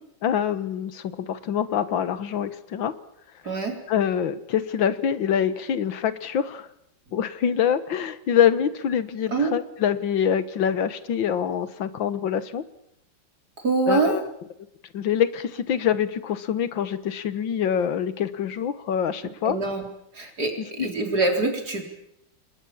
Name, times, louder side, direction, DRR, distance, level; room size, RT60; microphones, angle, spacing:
voice 1, 0.2-2.9 3.9-6.7 7.1-12.6 13.9-14.2 14.9-19.6 20.8-20.9, left 8 dB, 85° left, 13 dB, 2.0 m, -25 dB
voice 2, 3.4-3.8 9.3-9.5 13.6-14.1 19.4-19.9 20.1-21.9, right 3 dB, 55° right, 3 dB, 4.5 m, -24 dB
28.5 x 21.0 x 7.2 m, 0.80 s
omnidirectional pair, 2.0 m